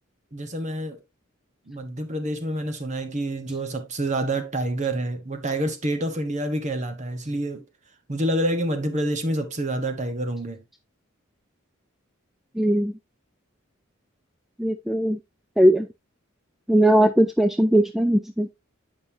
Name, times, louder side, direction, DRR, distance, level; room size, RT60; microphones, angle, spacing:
voice 1, 0.3-1.0 1.7-7.6 8.1-10.6, right 1 dB, 35° right, 1.2 m, -27 dB
voice 2, 12.6-12.9 14.6-15.2 15.6-15.9 16.7-18.5, right 1 dB, ahead, 0.4 m, -19 dB
9.0 x 5.3 x 2.7 m
head